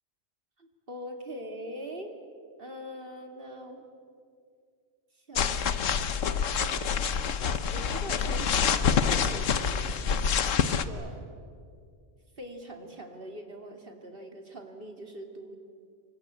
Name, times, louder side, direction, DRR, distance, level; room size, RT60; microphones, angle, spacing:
voice 1, 0.6-2.1 2.6-3.9 5.1-6.0 7.7-9.9 10.7-11.3 12.4-15.6, equal, 45° right, 4 dB, 3.1 m, -42 dB
sound 1, 5.4-10.8, left 6 dB, 85° left, 1.4 m, -27 dB
29.0 x 23.5 x 8.5 m, 2.3 s
omnidirectional pair, 1.3 m